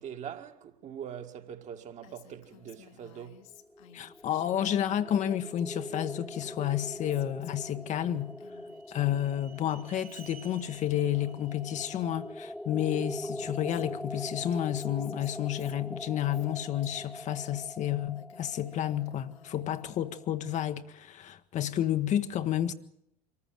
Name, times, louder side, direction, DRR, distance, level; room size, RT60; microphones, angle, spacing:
voice 1, 0.0-3.5, right 9 dB, 40° right, 1.9 m, -43 dB
Female speech woman speaking, 2.0-5.6 5.9-9.2 9.5-11.9 12.5-12.6 12.8-17.5 17.9-19.9, left 9 dB, 60° left, 1.7 m, -56 dB
sound 1, 3.5-20.3, left 1 dB, ahead, 1.1 m, -43 dB
voice 2, 3.9-8.3 8.9-22.7, left 11 dB, 40° left, 1.1 m, -31 dB
sound 2, 7.7-12.9, right 8 dB, 70° right, 1.4 m, -56 dB
24.5 x 14.5 x 7.7 m
figure-of-eight pair, 65°, 19 cm